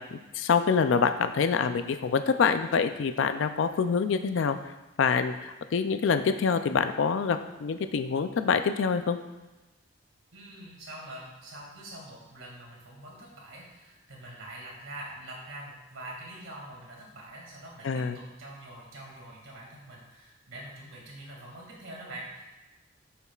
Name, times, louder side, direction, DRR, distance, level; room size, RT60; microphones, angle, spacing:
voice 1, 0.1-4.6 5.0-9.2 17.8-18.2, left 5 dB, 70° left, 9 dB, 0.4 m, -26 dB
voice 2, 10.3-22.4, right 1 dB, 90° right, -3 dB, 2.3 m, -44 dB
8.8 x 6.9 x 2.4 m, 1.1 s
head